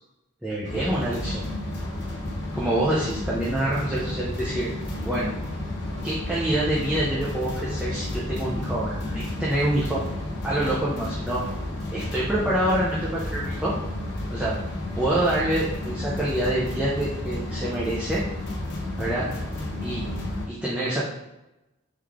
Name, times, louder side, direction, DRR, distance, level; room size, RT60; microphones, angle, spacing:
voice 1, 0.4-1.4 2.5-4.7 5.1-5.3 6.0-10.1 10.4-11.4 11.9-13.7 14.3-14.5 14.9-18.2 19.0-19.3 19.8-20.0 20.5-21.0, right 1 dB, 5° right, -7 dB, 0.5 m, -26 dB
sound 1, 0.6-20.5, left 1 dB, 55° left, 0.8 m, -32 dB
3.7 x 3.1 x 3.5 m, 0.97 s
head